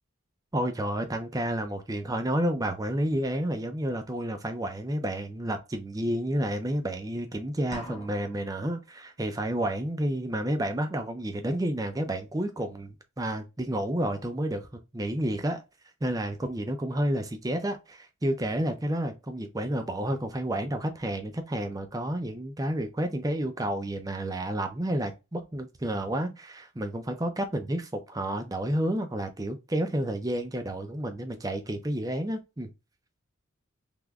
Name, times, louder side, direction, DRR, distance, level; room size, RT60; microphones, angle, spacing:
voice 1, 0.5-15.6 16.0-32.7, right 1 dB, 15° right, 0.5 m, -30 dB
sound 1, 7.7-8.7, equal, 25° left, 0.8 m, -43 dB
3.5 x 3.0 x 2.2 m
head